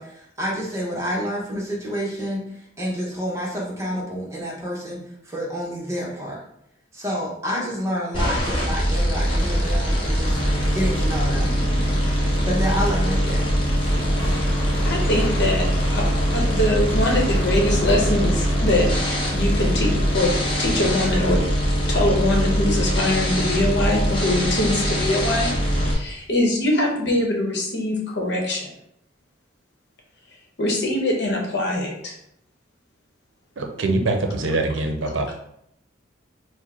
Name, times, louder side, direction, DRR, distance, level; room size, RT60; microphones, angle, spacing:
voice 1, 0.0-6.4 6.9-10.4 10.7-11.5 12.5-13.5, equal, 15° right, -3 dB, 0.9 m, -28 dB
sound 1, 8.1-25.9, equal, 25° left, 1.0 m, -22 dB
sound 2, 9.4-21.4, left 1 dB, 5° left, 1.1 m, -36 dB
voice 2, 14.8-15.7 15.9-16.0 16.3-18.9 19.3-20.3 20.6-21.4 21.9-25.5 25.9-28.7 30.6-32.1, left 1 dB, 60° left, -1 dB, 1.0 m, -22 dB
voice 3, 33.6-35.3, right 2 dB, 75° right, 4 dB, 0.6 m, -23 dB
4.5 x 2.1 x 4.2 m, 0.73 s
head